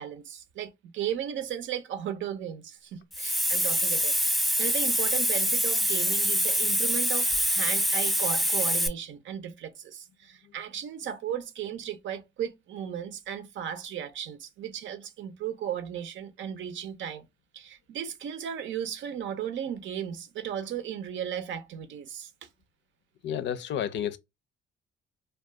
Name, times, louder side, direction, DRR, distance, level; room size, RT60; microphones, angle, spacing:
voice 1, 0.0-17.3 17.5-22.3, right 9 dB, 70° right, 0.6 m, -36 dB
Hiss, 3.1-8.9, equal, ahead, 0.4 m, -25 dB
voice 2, 23.2-24.2, left 9 dB, 65° left, 0.5 m, -30 dB
2.4 x 2.3 x 3.5 m
cardioid pair, 90°, 20 cm